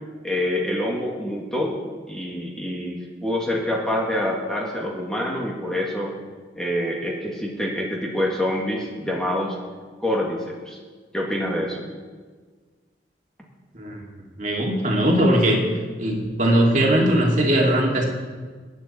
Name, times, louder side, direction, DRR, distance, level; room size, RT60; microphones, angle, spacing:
voice 1, 0.2-1.8 2.1-6.1 6.6-9.6 10.0-10.8 11.1-11.9, left 1 dB, 5° left, -3 dB, 1.9 m, -26 dB
voice 2, 14.4-15.6 16.0-18.0, right 1 dB, 45° right, -1 dB, 2.4 m, -19 dB
23.0 x 9.4 x 4.3 m, 1.5 s
head